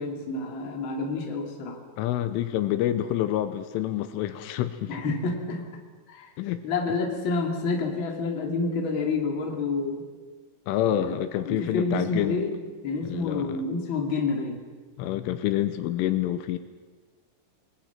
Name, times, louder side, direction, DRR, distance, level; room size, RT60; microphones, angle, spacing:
voice 1, 0.0-1.8 4.9-5.7 6.1-6.3 6.6-10.1 10.8-11.1 11.5-12.6 12.8-14.6, left 3 dB, 30° left, 2 dB, 2.5 m, -28 dB
voice 2, 2.0-5.0 6.4-6.6 10.7-12.4 13.0-13.6 15.0-16.6, left 12 dB, 80° left, 10 dB, 3.3 m, -27 dB
29.5 x 21.0 x 5.9 m, 1.4 s
omnidirectional pair, 5.8 m